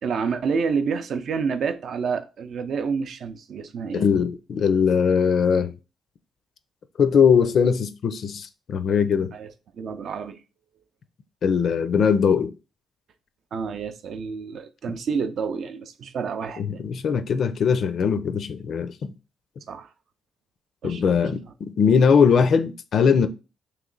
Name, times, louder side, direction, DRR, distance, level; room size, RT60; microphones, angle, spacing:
voice 1, 0.0-4.1 9.3-10.4 13.5-16.8 19.7-19.9 20.8-21.0, right 5 dB, 60° right, 0.4 m, -29 dB
voice 2, 3.9-5.7 7.0-9.3 11.4-12.5 16.6-19.1 20.8-23.3, left 6 dB, 60° left, 0.4 m, -20 dB
3.1 x 2.9 x 3.8 m
cardioid pair, 90°, 0 cm